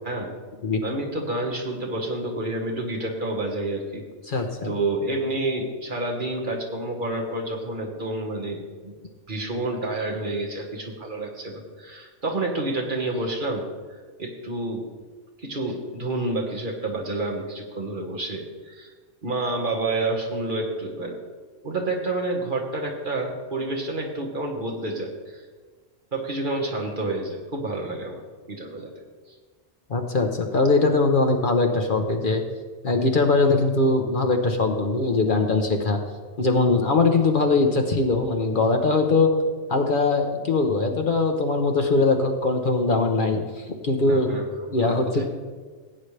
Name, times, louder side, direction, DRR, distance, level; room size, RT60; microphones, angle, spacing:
voice 1, 0.8-8.9 9.3-13.7 14.2-14.8 15.4-18.9 19.2-21.2 21.6-25.4 26.1-28.2 28.5-28.9 44.1-45.2, right 2 dB, 45° right, 0 dB, 1.6 m, -29 dB
voice 2, 4.3-4.7 29.9-32.4 32.8-36.0 36.4-39.3 39.7-44.4 44.7-45.2, left 3 dB, 50° left, 4 dB, 1.0 m, -21 dB
16.0 x 8.8 x 3.3 m, 1.4 s
omnidirectional pair, 1.2 m